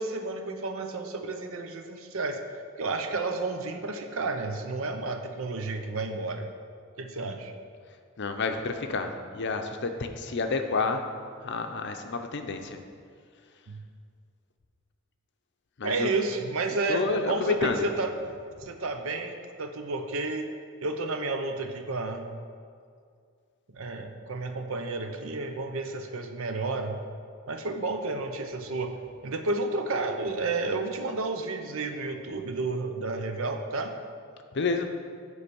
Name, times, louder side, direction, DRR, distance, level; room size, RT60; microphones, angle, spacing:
voice 1, 0.0-2.4 2.8-6.5 7.0-7.5 13.7-13.8 15.8-18.1 18.6-20.5 20.8-22.3 23.7-27.0 27.5-28.9 29.2-34.0, right 3 dB, 70° right, 6 dB, 0.7 m, -31 dB
voice 2, 8.2-11.0 11.4-12.8 15.8-16.1 16.9-17.9 34.5-34.9, left 4 dB, 55° left, 6 dB, 0.6 m, -29 dB
9.7 x 3.3 x 6.8 m, 2.2 s
head